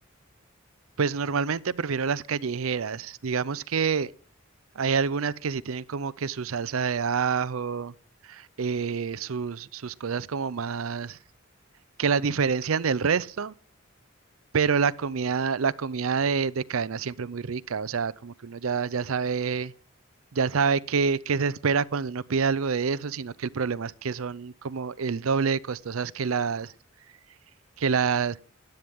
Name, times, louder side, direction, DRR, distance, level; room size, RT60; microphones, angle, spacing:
voice 1, 1.0-4.1 4.8-7.9 8.2-11.2 12.0-13.5 14.5-19.7 20.3-26.7 27.8-28.4, right 5 dB, 85° right, 0.6 m, -27 dB
17.0 x 11.5 x 3.6 m
head